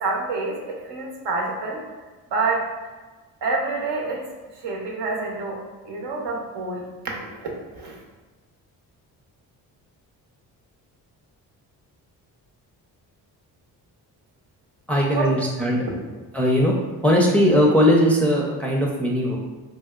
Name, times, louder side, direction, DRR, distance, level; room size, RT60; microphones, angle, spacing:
voice 1, 0.0-1.8 2.3-2.6 3.4-4.2 4.6-5.6 5.8-7.5 7.7-7.9 15.1-15.3, right 3 dB, 65° right, -1 dB, 0.9 m, -27 dB
voice 2, 14.9-15.8 16.3-16.8 17.0-19.4, equal, 5° left, -2 dB, 0.5 m, -19 dB
3.2 x 2.7 x 2.3 m, 1.3 s
supercardioid pair, 55°, 44 cm